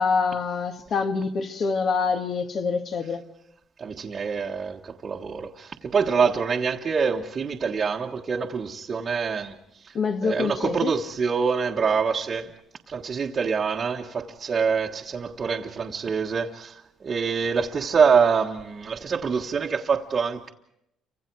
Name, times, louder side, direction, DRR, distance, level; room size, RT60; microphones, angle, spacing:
voice 1, 0.0-3.2 9.9-10.9, left 5 dB, 45° left, 2.0 m, -25 dB
voice 2, 3.8-9.5 9.8-9.9 10.2-12.5 12.9-20.5, right 5 dB, 35° right, 1.4 m, -25 dB
29.0 x 25.5 x 4.7 m
cardioid pair, 125°, 0 cm